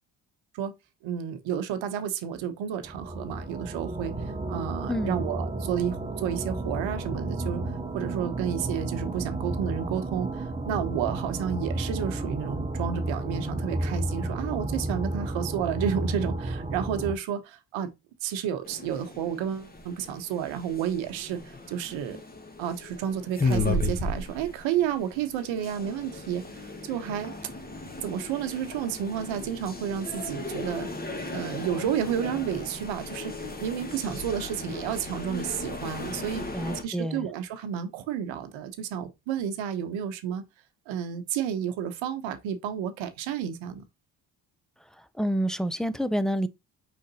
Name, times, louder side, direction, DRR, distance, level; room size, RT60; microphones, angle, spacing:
voice 1, 1.0-7.6 7.9-17.9 18.2-22.2 22.6-26.5 26.8-27.3 28.0-30.9 31.3-36.5 36.8-40.4 40.9-43.8, right 9 dB, 80° right, 0.9 m, -31 dB
sound 1, 2.8-17.1, right 2 dB, 15° right, 0.8 m, -32 dB
voice 2, 4.9-5.2 36.5-37.3 45.2-46.5, equal, ahead, 0.4 m, -28 dB
sound 2, 18.6-36.8, left 2 dB, 20° left, 1.3 m, -35 dB
5.0 x 3.8 x 2.7 m
supercardioid pair, 55°, 46 cm